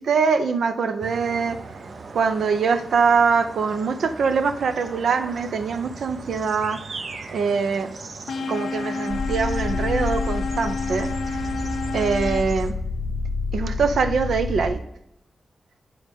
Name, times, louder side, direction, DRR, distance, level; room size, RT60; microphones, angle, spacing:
voice 1, 0.0-1.6 2.1-6.8 7.3-7.9 8.5-11.1 11.9-12.7 13.5-14.8, right 5 dB, 85° right, 8 dB, 0.7 m, -23 dB
sound 1, 1.0-12.7, right 3 dB, 50° right, 0.6 m, -40 dB
sound 2, 8.3-12.4, left 4 dB, 85° left, 0.4 m, -29 dB
sound 3, 9.1-14.8, left 3 dB, 45° left, 0.6 m, -28 dB
9.2 x 3.9 x 3.5 m, 0.82 s
wide cardioid pair, 140°, 0 cm